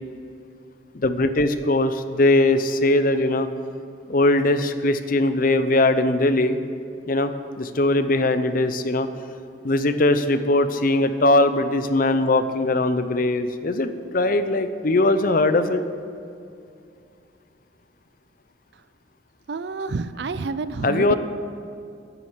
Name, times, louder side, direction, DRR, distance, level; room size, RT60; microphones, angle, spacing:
voice 1, 0.9-3.5 4.1-6.6 7.0-7.3 7.6-9.1 9.6-15.8 20.8-21.2, left 2 dB, 50° left, 10 dB, 0.7 m, -20 dB
voice 2, 19.5-21.2, right 4 dB, 65° right, 14 dB, 0.5 m, -29 dB
10.5 x 9.4 x 7.3 m, 2.5 s
head